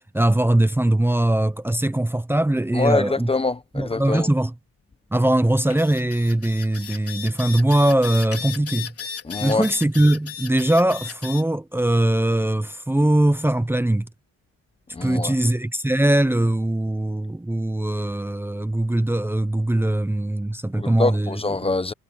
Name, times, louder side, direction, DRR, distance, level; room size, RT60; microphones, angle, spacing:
voice 1, 0.1-3.3 3.7-4.5 5.1-8.9 9.4-14.1 15.0-21.4, right 1 dB, 5° right, 1.0 m, -21 dB
voice 2, 2.7-4.3 9.2-9.6 14.9-15.3 20.7-21.9, left 3 dB, 20° left, 1.1 m, -24 dB
sound 1, 5.6-11.4, left 9 dB, 50° left, 4.2 m, -35 dB
cardioid pair, 90°, 30 cm